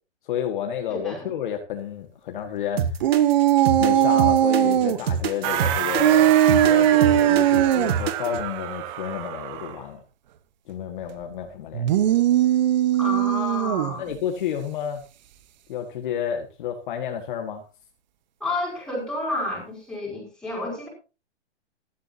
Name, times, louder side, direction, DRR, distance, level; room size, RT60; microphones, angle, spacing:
voice 1, 0.3-2.8 3.8-10.0 10.7-12.2 14.0-15.0 15.7-17.6, left 9 dB, 45° left, 4 dB, 1.8 m, -30 dB
voice 2, 0.9-1.3 13.0-14.1 18.4-20.9, left 2 dB, ahead, -2 dB, 5.2 m, -30 dB
sound 1, 2.8-8.4, right 8 dB, 60° right, 1.4 m, -26 dB
sound 2, 3.0-5.0 6.0-7.9 11.7-14.0, right 12 dB, 40° right, 1.0 m, -19 dB
sound 3, 5.4-9.8, right 12 dB, 15° right, 0.6 m, -29 dB
15.5 x 13.0 x 2.8 m, 0.32 s
hypercardioid pair, 155°, 35 cm